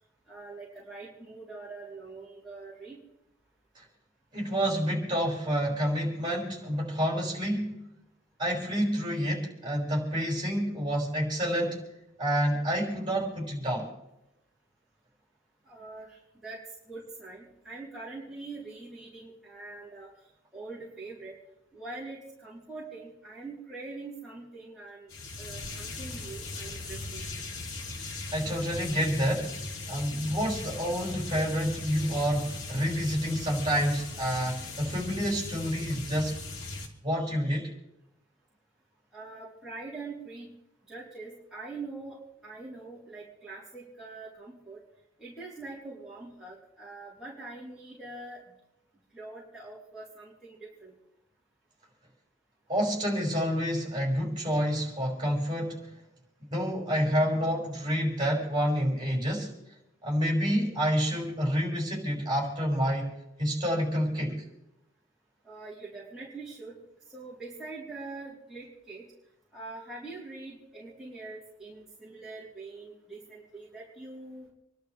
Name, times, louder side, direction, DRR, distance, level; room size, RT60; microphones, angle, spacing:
voice 1, 0.3-3.0 15.6-20.1 20.5-21.4 21.7-25.1 25.4-27.3 39.1-40.5 40.9-44.8 45.2-48.4 49.1-51.0 65.4-66.8 67.1-69.1 69.5-74.5, right 3 dB, 5° right, -9 dB, 3.8 m, -43 dB
voice 2, 4.3-7.8 8.4-11.8 12.2-13.9 28.3-29.5 29.9-36.3 37.0-37.7 52.7-55.9 56.5-59.5 60.0-63.1 63.4-64.4, equal, 25° right, -1 dB, 5.7 m, -28 dB
sound 1, 25.1-36.9, left 3 dB, 75° left, 3.0 m, -39 dB
28.0 x 12.0 x 3.4 m, 0.90 s
head